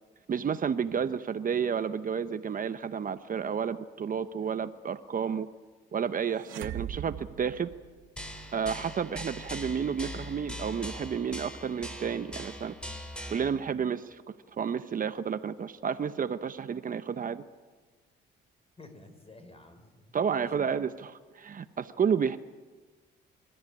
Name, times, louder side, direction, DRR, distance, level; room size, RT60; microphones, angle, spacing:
voice 1, 0.3-5.5 5.9-7.7 8.5-12.8 13.3-14.2 14.5-17.4 20.1-22.4, right 7 dB, 45° right, 11 dB, 0.9 m, -31 dB
sound 1, 6.4-8.4, right 11 dB, 80° right, 0.9 m, -40 dB
sound 2, 8.2-13.5, left 1 dB, 5° left, 3.7 m, -41 dB
voice 2, 18.8-20.1 20.4-20.9, left 1 dB, 30° left, 7 dB, 5.0 m, -52 dB
26.5 x 13.5 x 9.9 m, 1.3 s
cardioid pair, 90°, 20 cm